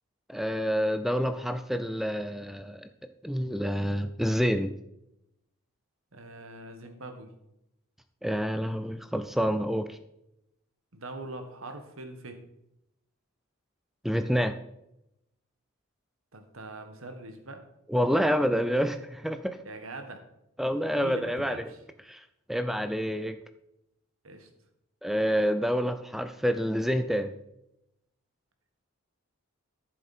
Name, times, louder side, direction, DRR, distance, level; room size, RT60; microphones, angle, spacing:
voice 1, 0.3-2.9 3.2-4.7 8.2-10.0 14.0-14.5 17.9-19.6 20.6-21.7 22.1-22.2 22.5-23.4 25.0-27.3, equal, ahead, 9 dB, 0.4 m, -28 dB
voice 2, 6.1-7.3 10.9-12.4 16.3-17.6 19.6-20.2 20.9-21.8 24.2-24.5, right 2 dB, 75° right, 6 dB, 1.6 m, -42 dB
13.5 x 7.6 x 4.4 m, 0.85 s
head